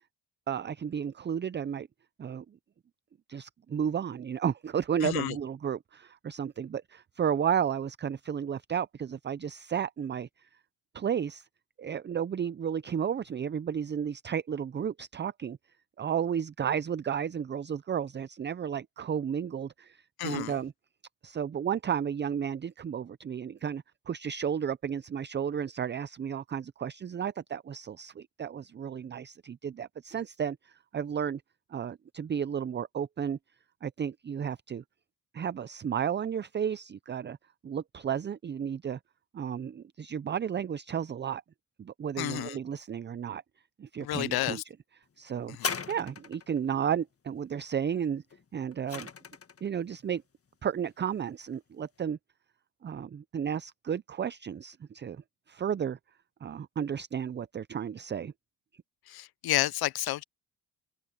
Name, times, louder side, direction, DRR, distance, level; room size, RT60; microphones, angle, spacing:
voice 1, 0.5-1.9 2.2-2.6 3.3-10.3 10.9-11.5 11.8-15.6 16.0-20.7 21.2-31.4 31.7-33.4 33.8-34.8 35.3-37.4 37.6-39.0 39.3-41.4 41.8-43.4 43.8-44.6 45.2-45.6 45.9-48.2 48.5-49.1 49.6-50.2 50.6-52.2 52.8-56.0 56.4-58.3, right 8 dB, 30° right, 0.5 m, -33 dB
voice 2, 5.0-5.3 20.2-20.5 42.2-42.6 44.0-44.6 45.6-45.7 59.1-60.2, left 15 dB, 65° left, 0.7 m, -30 dB
sound 1, 45.5-46.6 48.3-49.7 50.5-50.6, left 6 dB, 35° left, 1.7 m, -37 dB
open air
cardioid pair, 75°, 40 cm